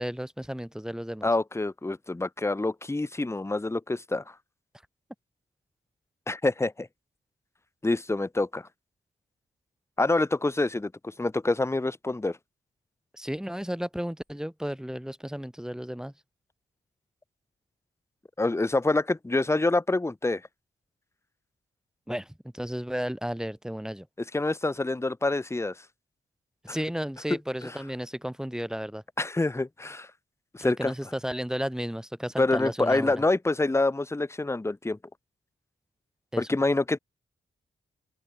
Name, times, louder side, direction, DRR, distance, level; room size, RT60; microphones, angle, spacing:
voice 1, 0.0-1.3 13.1-16.1 22.1-24.1 26.6-29.0 30.6-33.2 36.3-36.5, equal, 5° right, 7.3 m, -33 dB
voice 2, 1.2-4.3 6.3-6.9 7.8-8.7 10.0-12.4 18.4-20.4 24.3-25.8 27.6-27.7 29.2-30.1 30.5-30.9 32.4-35.0 36.4-37.0, left 2 dB, 15° left, 1.0 m, -26 dB
open air
wide cardioid pair, 110°, 20 cm